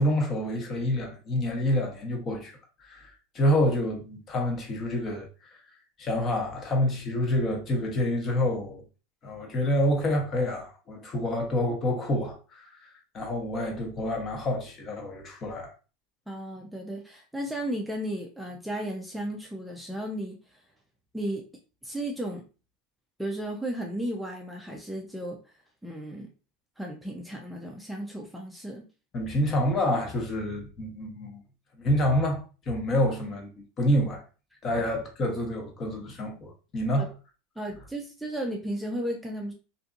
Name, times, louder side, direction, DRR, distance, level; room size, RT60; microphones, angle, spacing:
voice 1, 0.0-2.5 2.8-5.6 6.0-8.8 9.2-15.7 29.1-31.4 31.8-34.2 34.6-37.1, left 1 dB, 35° left, 0.9 m, -28 dB
voice 2, 16.3-20.6 21.1-21.4 21.8-22.4 23.2-25.6 25.8-26.3 26.8-28.9 37.0-37.1 37.6-39.5, right 1 dB, ahead, 0.4 m, -34 dB
2.6 x 2.5 x 2.4 m
supercardioid pair, 110°, 0 cm